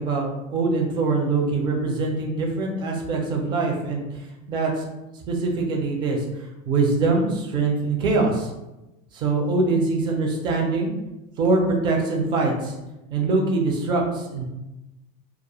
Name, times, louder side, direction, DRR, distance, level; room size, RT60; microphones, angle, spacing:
voice 1, 0.0-4.0 4.5-4.9 5.3-6.2 6.7-8.5 9.1-10.9 11.4-12.7 13.1-14.4, right 3 dB, 20° right, 1 dB, 0.4 m, -23 dB
2.3 x 2.1 x 2.9 m, 0.98 s
supercardioid pair, 160°, 21 cm